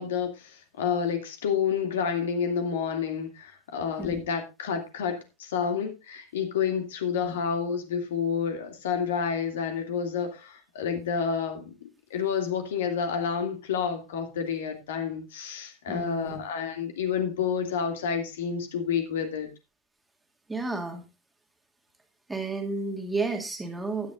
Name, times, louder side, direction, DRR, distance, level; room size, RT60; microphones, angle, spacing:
voice 1, 0.0-19.5, left 7 dB, 60° left, 2.4 m, -29 dB
voice 2, 15.9-16.4 20.5-21.1 22.3-24.1, right 3 dB, 5° right, 2.2 m, -32 dB
15.5 x 10.5 x 2.5 m
figure-of-eight pair, 90°, 0 cm